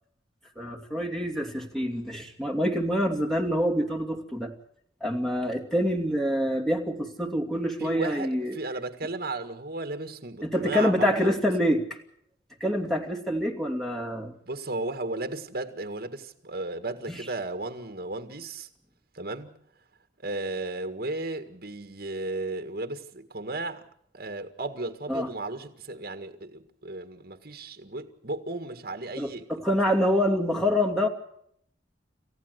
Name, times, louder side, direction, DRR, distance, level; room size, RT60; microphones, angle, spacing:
voice 1, 0.6-4.5 5.0-8.5 10.4-11.9 12.6-14.3 25.1-25.3 29.2-31.1, equal, ahead, 2.6 m, -26 dB
voice 2, 7.8-11.3 14.5-18.7 19.1-19.5 20.2-23.8 24.1-29.5, right 2 dB, 55° right, 1.9 m, -34 dB
28.5 x 14.5 x 8.1 m
head